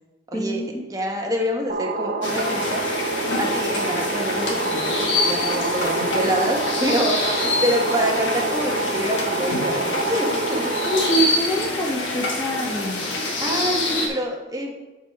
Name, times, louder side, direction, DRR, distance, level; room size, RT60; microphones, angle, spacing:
voice 1, 0.3-0.9 10.8-13.1, right 1 dB, 15° left, -2 dB, 0.6 m, -25 dB
voice 2, 0.9-10.7 13.4-14.7, equal, 20° right, 0 dB, 1.0 m, -26 dB
sound 1, 1.7-11.2, right 3 dB, 45° right, 0.6 m, -27 dB
sound 2, 2.2-14.1, left 2 dB, 80° left, 1.4 m, -26 dB
11.0 x 4.7 x 3.4 m, 1.1 s
head